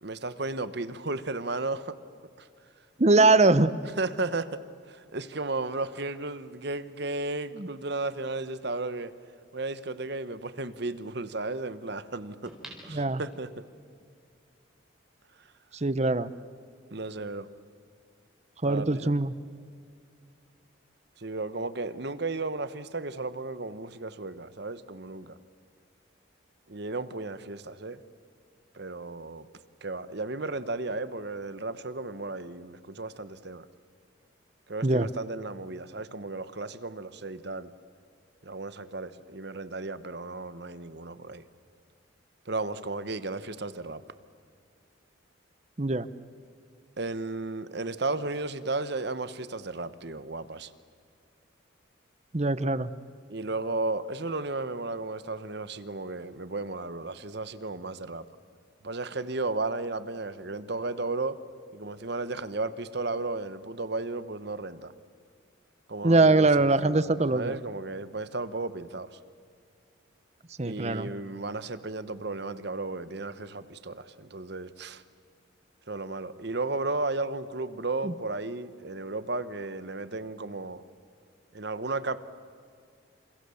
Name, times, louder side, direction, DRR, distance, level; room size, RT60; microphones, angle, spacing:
voice 1, 0.0-2.0 2.4-2.5 4.0-4.6 4.9-9.1 9.5-12.5 12.8-13.5 16.9-17.5 18.6-19.1 21.2-25.4 26.7-28.0 28.7-29.5 29.8-33.7 34.7-37.7 38.4-41.4 42.5-44.0 47.0-50.7 53.3-58.2 58.8-61.4 61.7-64.9 65.9-69.2 70.6-75.0 75.9-80.8 81.5-82.2, right 3 dB, 55° right, 13 dB, 1.1 m, -34 dB
voice 2, 3.0-3.8 7.6-7.7 12.9-13.2 15.7-16.3 18.6-19.3 34.8-35.1 45.8-46.1 52.3-52.9 66.0-67.6 70.6-71.1 78.0-78.1, right 2 dB, 35° right, 15 dB, 0.8 m, -22 dB
sound 1, 12.5-13.8 14.3-14.4, right 1 dB, ahead, 4.6 m, -48 dB
29.0 x 27.5 x 7.1 m, 2.3 s
head